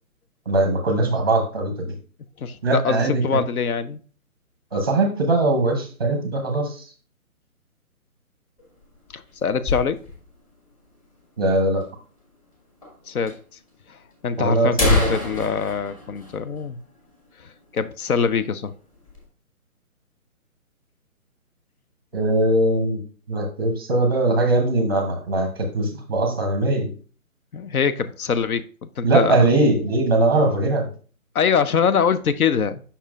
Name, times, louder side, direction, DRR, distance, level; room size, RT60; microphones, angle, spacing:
voice 1, 0.5-1.9 2.6-3.2 4.7-6.8 11.4-11.8 14.4-15.2 22.1-23.0 23.3-25.5 25.7-26.9 29.0-30.9, right 2 dB, 15° right, 0.6 m, -21 dB
voice 2, 2.4-4.0 9.1-10.0 13.1-13.4 13.9-16.8 17.4-18.7 27.5-28.7 29.0-29.5 31.3-32.8, left 6 dB, 75° left, 0.7 m, -23 dB
sound 1, 8.6-10.4 10.7-10.8 11.0-11.1 11.8-11.9 12.8-12.9 13.3-13.4 14.1-14.2 14.5-17.1 17.5-17.6 18.0-18.3 18.7-19.3, left 2 dB, 25° left, 1.5 m, -26 dB
7.0 x 5.6 x 2.4 m
hypercardioid pair, 160°, 44 cm